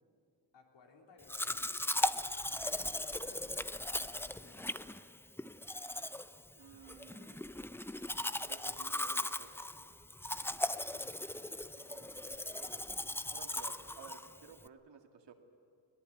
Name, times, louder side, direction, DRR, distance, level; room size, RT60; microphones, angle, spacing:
voice 1, 0.5-1.8 2.7-5.0 10.9-13.0, left 3 dB, 85° left, 1 dB, 3.5 m, -61 dB
Domestic sounds home sounds, 1.3-14.7, left 1 dB, 5° left, 0.5 m, -38 dB
voice 2, 6.6-7.4 8.4-9.5 11.9-12.0 13.3-15.3, right 6 dB, 75° right, 4 dB, 2.3 m, -54 dB
22.0 x 18.5 x 9.4 m, 2.3 s
cardioid pair, 80°, 43 cm